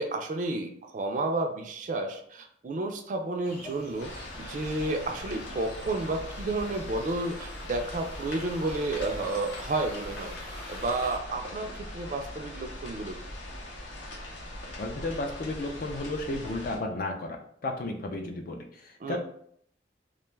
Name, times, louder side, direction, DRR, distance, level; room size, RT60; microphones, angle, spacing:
voice 1, 0.0-13.2 19.0-19.2, right 2 dB, 45° right, 5 dB, 0.3 m, -31 dB
sound 1, 3.4-11.2, left 1 dB, 35° left, 0.9 m, -46 dB
sound 2, 4.0-16.8, left 1 dB, 90° left, 0.7 m, -41 dB
voice 2, 14.8-17.4 17.6-19.2, left 2 dB, 50° left, 3 dB, 0.4 m, -33 dB
2.4 x 2.3 x 3.1 m, 0.65 s
head